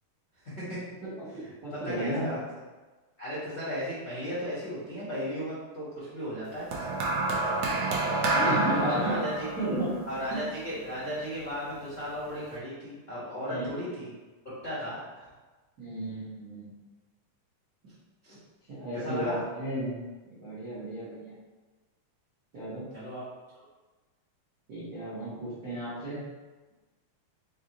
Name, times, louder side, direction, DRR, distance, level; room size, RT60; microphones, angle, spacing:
voice 1, 0.4-0.8 1.7-2.5 3.2-6.9 8.9-9.5 10.1-14.1 14.4-15.3 18.2-18.4 18.9-19.4 22.9-23.2 23.5-23.6, equal, 60° left, -12 dB, 0.6 m, -35 dB
voice 2, 1.0-2.4 8.2-9.1 9.6-9.9 10.3-10.4 13.5-13.7 15.8-16.7 18.7-20.0 20.4-21.3 22.5-22.9 24.7-26.2, right 1 dB, 55° right, -11 dB, 1.0 m, -33 dB
sound 1, 6.7-11.1 12.1-12.3, right 2 dB, 85° right, 1.4 m, -29 dB
5.2 x 2.5 x 4.0 m, 1.2 s
omnidirectional pair, 3.7 m